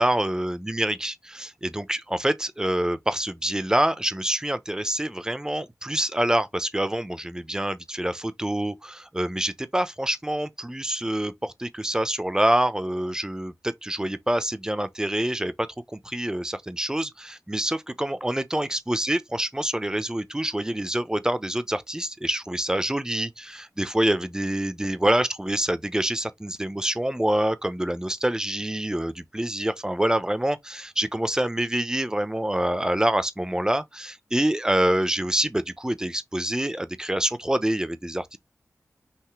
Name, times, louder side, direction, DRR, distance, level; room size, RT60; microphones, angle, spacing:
voice 1, 0.0-15.5 15.9-38.4, right 1 dB, 10° right, 0.7 m, -26 dB
5.8 x 2.6 x 3.2 m
wide cardioid pair, 65°, 6 cm